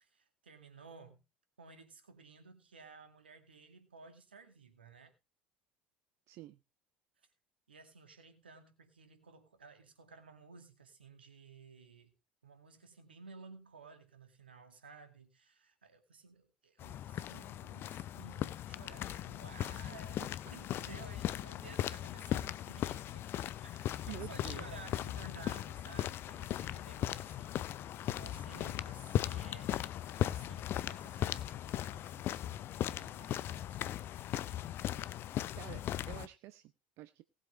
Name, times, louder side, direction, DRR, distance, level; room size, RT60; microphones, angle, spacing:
voice 1, 0.1-1.2 1.6-5.1 7.7-12.1 12.4-23.2 23.6-33.8, right 4 dB, 80° right, 2.1 m, -56 dB
voice 2, 6.3-6.6 19.1-19.2 24.1-24.7 35.5-37.2, right 16 dB, 50° right, 0.6 m, -49 dB
sound 1, 16.8-36.3, left 12 dB, 45° left, 0.7 m, -38 dB
19.0 x 7.9 x 3.3 m
figure-of-eight pair, 65°, 5 cm